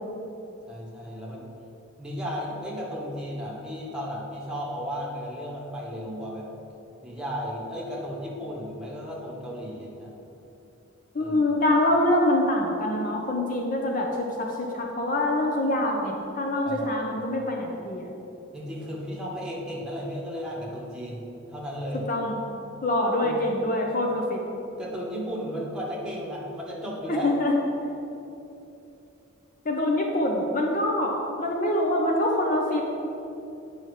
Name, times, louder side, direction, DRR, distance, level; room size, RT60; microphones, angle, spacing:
voice 1, 0.7-1.5 2.0-6.5 7.0-10.1 11.2-11.4 16.6-16.9 18.5-22.1 23.2-23.4 24.8-27.3, equal, 5° right, -5 dB, 1.5 m, -34 dB
voice 2, 11.1-18.1 22.1-22.5 22.8-24.4 27.1-27.5 29.7-32.8, left 1 dB, 40° left, 0 dB, 0.7 m, -25 dB
9.0 x 5.5 x 4.9 m, 2.9 s
head